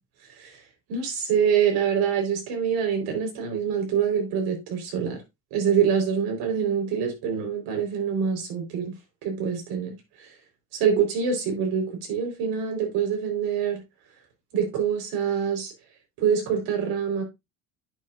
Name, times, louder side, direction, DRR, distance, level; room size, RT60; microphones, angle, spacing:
voice 1, 0.9-5.2 5.5-8.9 9.2-10.3 10.7-13.8 14.5-15.7 16.2-17.2, right 7 dB, 70° right, 4.1 m, -25 dB
10.5 x 6.6 x 2.4 m
cardioid pair, 135°, 39 cm